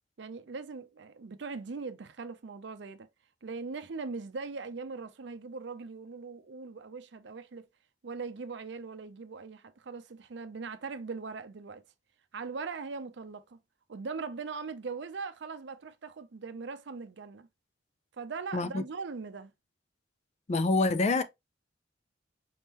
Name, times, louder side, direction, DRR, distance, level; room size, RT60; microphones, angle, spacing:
voice 1, 0.2-3.1 3.4-7.7 8.0-11.8 12.3-13.6 13.9-17.5 18.1-19.5, right 4 dB, 65° right, 0.5 m, -40 dB
voice 2, 18.5-18.8 20.5-21.2, left 3 dB, 35° left, 0.4 m, -26 dB
4.2 x 3.6 x 2.8 m
head